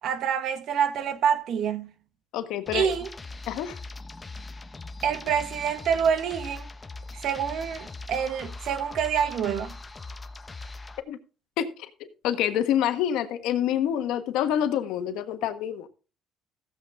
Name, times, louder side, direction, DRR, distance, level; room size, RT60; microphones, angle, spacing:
voice 1, 0.0-1.9 2.7-3.1 5.0-6.7 7.1-9.8, right 7 dB, 70° right, 1.5 m, -27 dB
voice 2, 2.3-2.9 3.5-3.8 11.1-11.2 11.6-11.7 12.2-15.9, left 10 dB, 90° left, 1.4 m, -26 dB
sound 1, 2.7-11.0, left 3 dB, 20° left, 1.1 m, -41 dB
15.5 x 7.9 x 3.5 m
cardioid pair, 115°, 0 cm